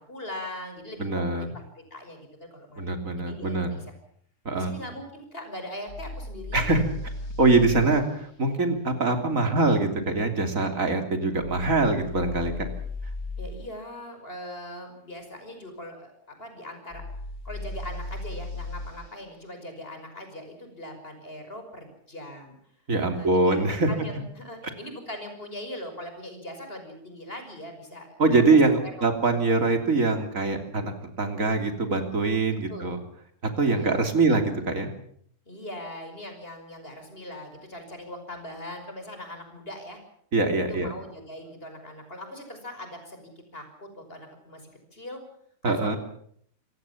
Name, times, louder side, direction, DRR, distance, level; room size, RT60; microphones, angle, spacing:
voice 1, 0.0-3.8 4.5-6.7 13.4-17.0 17.4-22.6 23.1-28.9 29.3-29.4 32.7-32.9 33.7-34.0 35.5-40.0 40.7-45.2 45.6-46.0, left 1 dB, 35° left, 6 dB, 5.9 m, -41 dB
voice 2, 1.0-1.5 2.8-3.8 4.5-4.7 6.5-6.8 7.4-12.7 22.9-23.9 28.2-33.0 33.6-34.9 40.3-40.9 45.6-46.0, right 3 dB, 55° right, 6 dB, 3.5 m, -23 dB
sound 1, 5.9-7.9 11.4-13.5 16.9-19.0, left 3 dB, 65° left, 4.2 m, -36 dB
27.5 x 18.5 x 7.2 m, 0.66 s
omnidirectional pair, 1.7 m